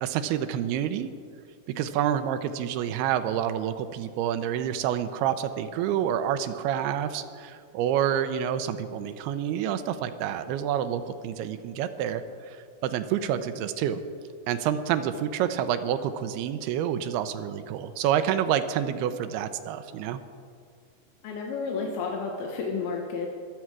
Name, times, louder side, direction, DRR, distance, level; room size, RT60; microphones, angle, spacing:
voice 1, 0.0-1.1 1.7-14.0 14.5-20.2, right 10 dB, 85° right, 10 dB, 2.6 m, -28 dB
voice 2, 21.2-23.3, left 4 dB, 80° left, 1 dB, 2.9 m, -31 dB
22.5 x 7.5 x 4.7 m, 2.2 s
omnidirectional pair, 4.6 m